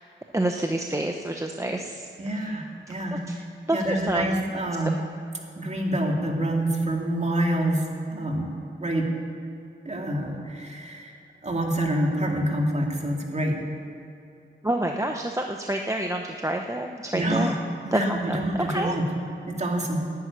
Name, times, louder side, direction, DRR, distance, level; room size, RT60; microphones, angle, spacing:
voice 1, 0.3-2.5 2.9-3.4 3.7-4.5 4.8-4.9 14.6-17.6 17.9-18.9, right 1 dB, 15° right, 2 dB, 0.8 m, -28 dB
voice 2, 2.2-3.2 3.7-5.0 5.6-7.8 8.1-8.5 8.8-9.1 9.8-11.1 11.4-13.6 17.1-17.5 17.8-19.1 19.5-20.0, right 1 dB, 35° right, 0 dB, 2.5 m, -26 dB
10.5 x 9.0 x 9.6 m, 2.8 s
wide cardioid pair, 85°, 21 cm